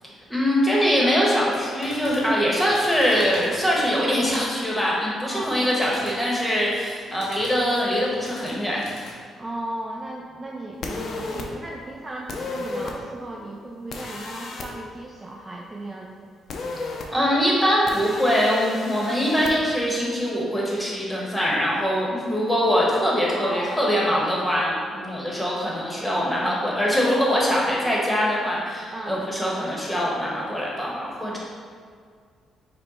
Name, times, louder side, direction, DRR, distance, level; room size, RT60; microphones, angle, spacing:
voice 1, 0.3-8.8 17.1-31.4, equal, 5° left, -4 dB, 1.1 m, -23 dB
sound 1, 1.8-4.4 5.3-9.1, left 2 dB, 90° left, 0.9 m, -43 dB
voice 2, 5.2-5.7 9.4-16.3 23.4-24.0 27.8-28.1 28.9-29.2 31.2-31.4, right 1 dB, 25° right, -2 dB, 0.4 m, -36 dB
sound 2, 10.8-11.5 12.3-12.9 13.9-14.7 16.5-17.1 17.9-19.5, left 3 dB, 60° left, 0.5 m, -33 dB
5.2 x 2.2 x 4.1 m, 2.1 s
cardioid pair, 90°, 0 cm